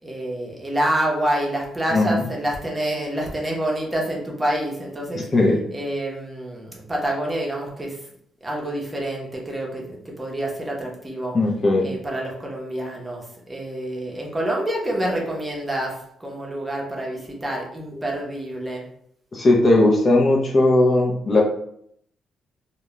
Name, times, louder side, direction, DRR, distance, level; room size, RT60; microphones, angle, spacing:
voice 1, 0.0-5.3 5.7-8.0 8.4-11.3 11.8-18.8, right 1 dB, 15° right, -2 dB, 0.7 m, -27 dB
voice 2, 5.1-5.6 11.3-11.9 19.3-21.4, left 2 dB, 35° left, -2 dB, 0.5 m, -18 dB
2.2 x 2.1 x 3.0 m, 0.70 s
cardioid pair, 90°, 0 cm